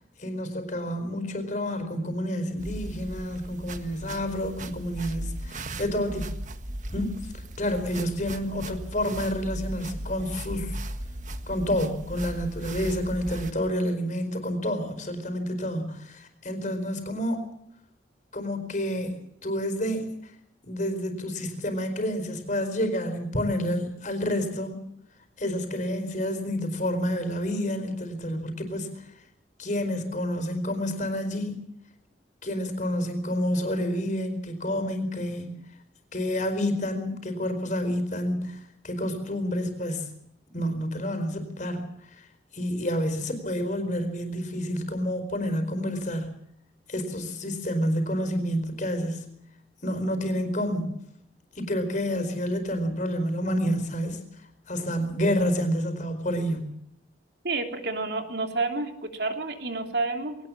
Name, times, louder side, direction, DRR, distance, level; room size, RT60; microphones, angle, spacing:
voice 1, 0.2-6.3 6.9-10.8 11.5-17.4 18.3-20.3 20.6-24.8 25.4-29.1 29.6-31.6 32.4-35.5 36.1-40.1 40.5-42.3 42.5-46.3 46.9-49.3 49.8-51.0 51.5-54.2 54.7-56.7, equal, 45° left, 7 dB, 4.6 m, -29 dB
sound 1, 2.6-13.5, right 1 dB, 45° right, 1.6 m, -37 dB
voice 2, 57.4-60.4, right 3 dB, 70° right, 5 dB, 3.2 m, -29 dB
21.5 x 18.5 x 7.5 m, 0.73 s
head